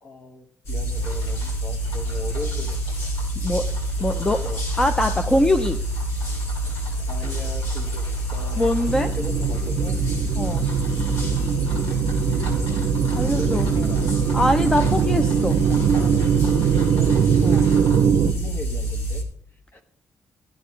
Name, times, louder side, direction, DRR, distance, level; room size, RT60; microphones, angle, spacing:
voice 1, 0.0-3.2 4.1-4.6 7.1-8.7 9.2-10.0 13.2-14.8 16.5-17.1 17.5-17.7 18.0-19.2 19.7-19.8, left 2 dB, 40° left, 5 dB, 1.6 m, -39 dB
sound 1, 0.6-19.2, right 1 dB, 60° left, 2.3 m, -27 dB
sound 2, 0.9-18.0, equal, 85° left, 5.8 m, -41 dB
voice 2, 4.0-4.4 4.8-5.8 8.6-9.1 10.4-10.7 13.2-13.7 14.3-15.6 17.4-17.7, left 1 dB, 15° left, 8 dB, 0.5 m, -22 dB
sound 3, 8.9-18.3, right 8 dB, 65° right, 0.5 m, -22 dB
14.5 x 10.0 x 3.2 m, 0.62 s
cardioid pair, 130°, 5 cm